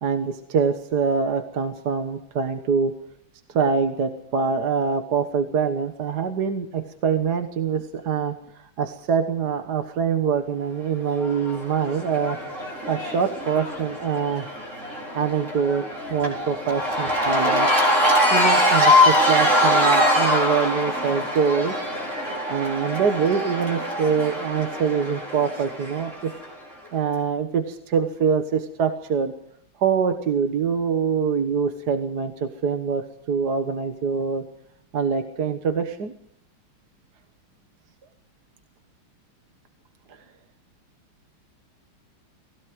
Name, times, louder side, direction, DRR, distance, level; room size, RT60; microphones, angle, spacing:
voice 1, 0.0-2.9 3.5-8.4 8.8-12.4 12.9-14.6 15.1-15.8 16.1-17.7 18.3-21.8 22.5-26.3 26.9-29.3 29.8-34.4 34.9-36.1, right 6 dB, 55° right, 7 dB, 1.8 m, -24 dB
Cheering / Crowd, 11.2-26.4, left 1 dB, 35° right, 4.9 m, -23 dB
19.5 x 17.0 x 7.9 m, 0.67 s
omnidirectional pair, 2.2 m